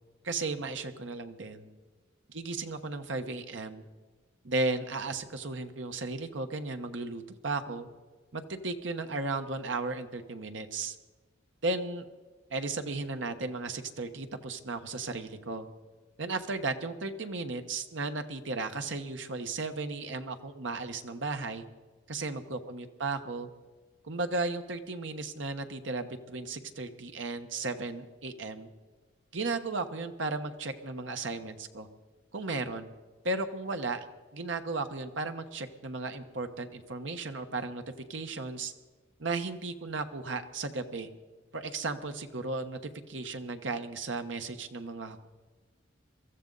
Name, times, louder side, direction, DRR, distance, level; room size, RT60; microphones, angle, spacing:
voice 1, 0.2-1.7 2.3-3.8 4.4-7.9 8.3-11.0 11.6-12.0 12.5-15.7 16.2-21.7 22.1-23.5 24.0-28.7 29.3-31.9 32.3-32.9 33.2-34.1 34.3-37.8 38.1-38.7 39.2-41.1 41.5-45.3, right 3 dB, 75° right, 7 dB, 1.2 m, -35 dB
23.0 x 14.5 x 4.0 m, 1.3 s
head